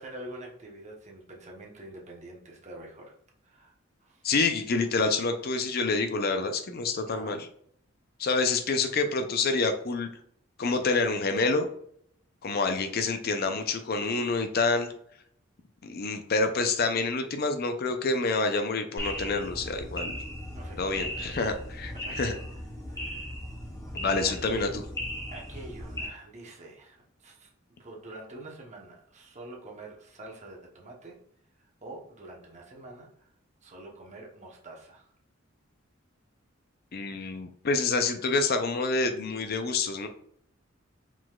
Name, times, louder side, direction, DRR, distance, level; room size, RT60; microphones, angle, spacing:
voice 1, 0.0-3.1 3.4-3.7 4.0-4.3 7.0-7.4 20.5-21.4 22.0-22.1 22.9-23.3 24.2-24.7 25.3-27.5 27.8-31.1 31.6-33.3 33.6-35.1, right 2 dB, 35° right, -1 dB, 1.0 m, -46 dB
voice 2, 4.2-7.5 8.2-10.1 10.6-11.7 12.4-14.9 15.8-20.2 20.8-22.3 23.9-24.8 36.9-40.1, left 3 dB, 50° left, 7 dB, 0.5 m, -27 dB
sound 1, 19.0-26.1, equal, 15° left, 0.9 m, -37 dB
4.8 x 3.9 x 2.3 m, 0.64 s
head